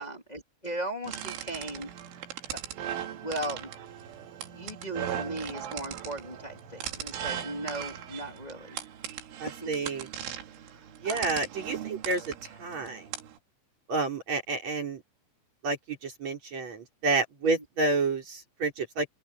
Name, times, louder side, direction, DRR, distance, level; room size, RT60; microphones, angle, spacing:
voice 1, 0.0-1.9 2.5-2.6 3.2-3.7 4.5-8.8 9.4-9.9 11.0-11.3 17.4-17.6, right 1 dB, 15° left, 1.7 m, -37 dB
sound 1, 1.0-13.4, right 10 dB, 80° right, 4.6 m, -39 dB
voice 2, 9.4-10.1 11.0-13.0 13.9-15.0 15.6-19.1, right 3 dB, 35° right, 6.0 m, -30 dB
open air
omnidirectional pair, 5.5 m